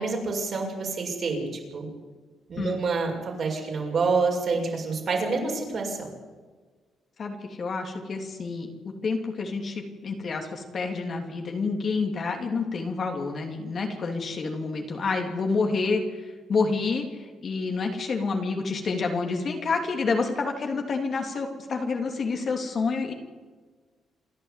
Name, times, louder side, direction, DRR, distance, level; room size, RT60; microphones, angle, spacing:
voice 1, 0.0-1.9 2.5-6.1, right 4 dB, 55° right, 0 dB, 6.7 m, -27 dB
voice 2, 7.2-8.7 9.0-23.1, left 4 dB, 50° left, 3 dB, 3.1 m, -28 dB
28.0 x 11.0 x 8.4 m, 1.4 s
cardioid pair, 90°, 0 cm